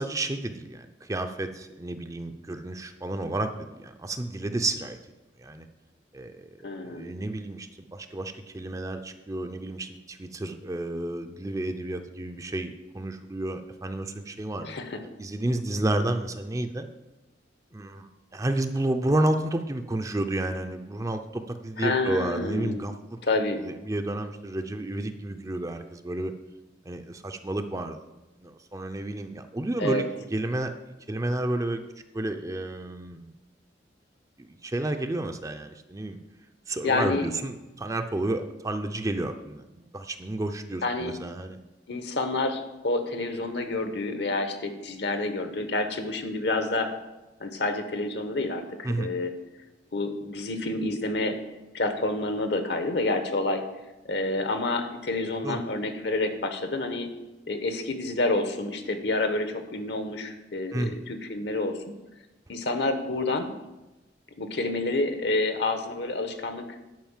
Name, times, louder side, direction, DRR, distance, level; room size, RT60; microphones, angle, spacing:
voice 1, 0.0-5.0 5.4-5.7 6.1-14.8 15.2-16.9 17.7-23.2 23.6-26.3 26.9-28.0 28.4-30.7 31.1-31.8 32.1-33.3 34.6-36.2 36.7-41.6 48.8-49.1 55.4-55.6 60.7-61.0, right 1 dB, 20° right, 7 dB, 0.5 m, -31 dB
voice 2, 6.6-7.1 14.6-15.0 21.8-22.8 23.2-23.6 29.8-30.1 36.8-37.3 40.8-41.1 41.9-46.9 47.4-49.3 49.9-51.4 51.7-53.6 54.1-57.1 57.5-61.8 62.5-63.5 64.4-66.6, left 2 dB, 65° left, 7 dB, 1.1 m, -28 dB
10.5 x 5.4 x 7.3 m, 1.0 s
head